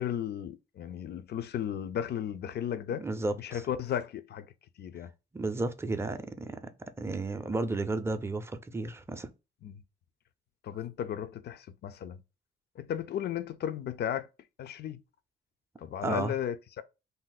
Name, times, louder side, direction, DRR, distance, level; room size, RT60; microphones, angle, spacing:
voice 1, 0.0-3.1 3.4-4.5 4.8-5.1 9.6-9.8 10.6-12.2 12.8-14.3 14.6-15.0 15.8-16.8, left 9 dB, 55° left, 0.4 m, -35 dB
voice 2, 3.0-3.6 5.3-6.7 7.0-9.3 16.0-16.3, right 2 dB, 15° right, 0.4 m, -33 dB
2.6 x 2.0 x 3.9 m
cardioid pair, 90°, 20 cm